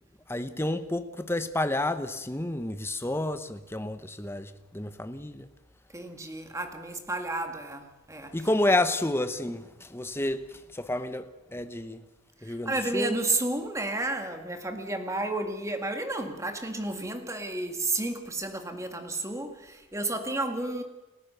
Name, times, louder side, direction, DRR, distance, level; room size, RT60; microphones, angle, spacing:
voice 1, 0.3-5.5 8.3-12.0 12.4-13.2, left 1 dB, 10° left, 0.9 m, -30 dB
voice 2, 5.9-8.3 12.5-20.8, right 2 dB, 15° right, 1.9 m, -32 dB
29.5 x 13.5 x 6.8 m
head